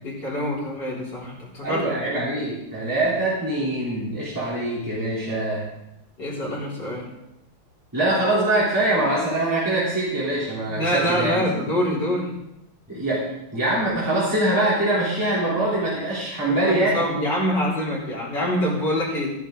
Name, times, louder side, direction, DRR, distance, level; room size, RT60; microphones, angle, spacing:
voice 1, 0.0-2.2 6.2-7.1 10.7-12.3 16.5-19.3, equal, 60° left, -5 dB, 4.2 m, -25 dB
voice 2, 1.6-5.7 7.9-11.5 12.9-13.3 13.5-17.0, right 1 dB, 10° right, -8 dB, 3.4 m, -23 dB
13.0 x 11.0 x 3.8 m, 0.84 s
omnidirectional pair, 2.2 m